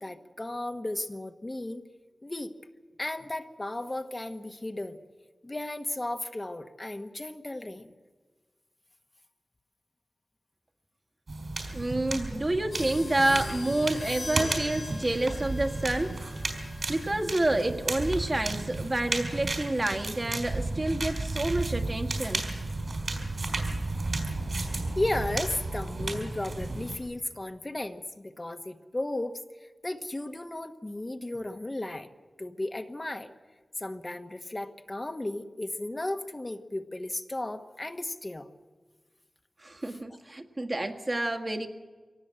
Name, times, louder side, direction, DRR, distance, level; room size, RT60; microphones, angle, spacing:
voice 1, 0.0-1.8 2.2-2.5 3.0-5.0 5.4-7.9 12.3-12.4 24.3-24.4 25.0-29.4 29.8-32.1 32.4-33.3 33.8-38.5 39.9-40.0, left 1 dB, 30° left, 6 dB, 1.3 m, -34 dB
sound 1, 11.3-27.0, right 2 dB, 60° right, 4.4 m, -33 dB
voice 2, 11.7-16.2 16.9-22.4 39.6-41.7, right 1 dB, 40° right, 4 dB, 1.8 m, -29 dB
sound 2, 12.7-22.9, left 3 dB, 60° left, 2.4 m, -45 dB
23.5 x 18.0 x 7.8 m, 1.4 s
cardioid pair, 45°, 0 cm